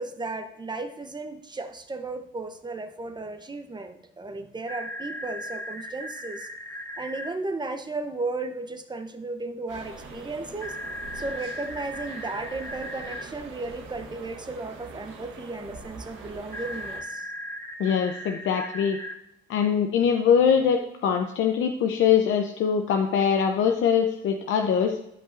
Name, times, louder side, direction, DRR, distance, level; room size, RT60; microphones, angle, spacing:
voice 1, 0.0-6.5 7.0-10.8 11.1-17.3, right 3 dB, 20° right, 8 dB, 0.8 m, -35 dB
sound 1, 4.7-7.3 10.6-13.2 16.5-19.1, equal, 15° left, 2.0 m, -37 dB
sound 2, 9.7-17.0, right 3 dB, 85° right, 1.4 m, -43 dB
voice 2, 17.8-19.0 19.5-25.0, left 7 dB, 75° left, 4 dB, 0.7 m, -23 dB
12.5 x 5.5 x 2.6 m, 0.81 s
cardioid pair, 90°, 20 cm